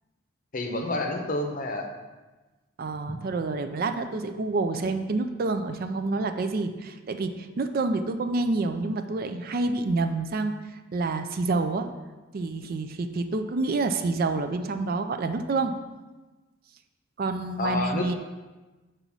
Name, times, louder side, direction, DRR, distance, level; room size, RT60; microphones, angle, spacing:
voice 1, 0.5-1.9 3.1-3.2 17.6-18.1, left 2 dB, 40° left, 4 dB, 0.7 m, -29 dB
voice 2, 2.8-10.6 10.9-11.9 12.3-15.7 17.2-18.1, right 3 dB, 45° right, 8 dB, 0.4 m, -28 dB
5.5 x 4.0 x 6.0 m, 1.2 s
head